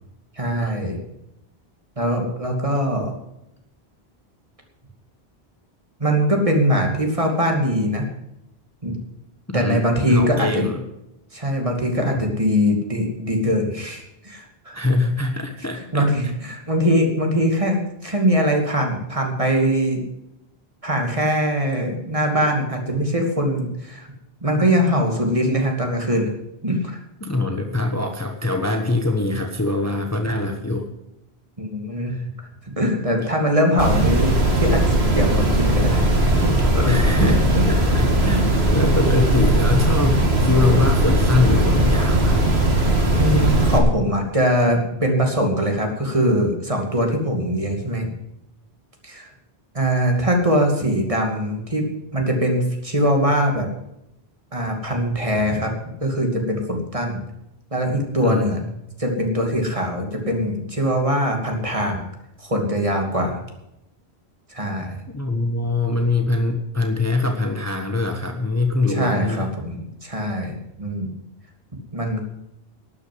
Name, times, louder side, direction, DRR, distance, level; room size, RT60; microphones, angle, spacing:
voice 1, 0.4-1.0 2.0-3.1 6.0-8.1 8.8-9.0 9.5-10.6 11.3-14.8 15.7-20.0 20.8-24.1 24.4-26.3 26.6-27.0 31.6-32.2 32.7-37.2 37.5-37.7 43.1-48.1 49.0-49.3 49.7-51.9 52.1-53.7 54.5-55.7 56.0-57.3 57.7-58.6 59.0-62.1 62.4-63.4 64.5-65.0 68.9-71.1 71.9-72.2, equal, 30° right, 2 dB, 2.7 m, -22 dB
voice 2, 9.5-10.8 14.7-16.1 27.2-30.9 32.1-32.2 36.9-42.4 58.2-58.5 65.1-69.5, left 3 dB, 15° left, 4 dB, 1.2 m, -23 dB
sound 1, 33.8-43.8, right 1 dB, 75° right, 2.6 m, -18 dB
12.5 x 9.3 x 7.8 m, 0.86 s
omnidirectional pair, 1.1 m